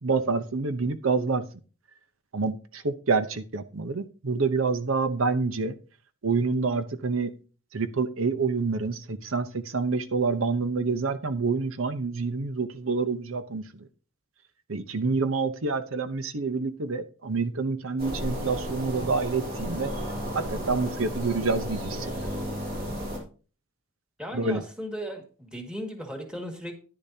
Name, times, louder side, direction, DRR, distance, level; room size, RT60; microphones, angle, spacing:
voice 1, 0.0-1.4 2.3-5.8 6.2-7.3 7.7-13.9 14.7-19.9 20.3-22.3 24.3-24.6, right 4 dB, 90° right, 11 dB, 0.9 m, -27 dB
sound 1, 18.0-23.2, equal, 50° right, 3.4 m, -33 dB
voice 2, 24.2-26.7, equal, 5° right, 3 dB, 1.9 m, -36 dB
10.5 x 10.0 x 2.8 m, 0.37 s
head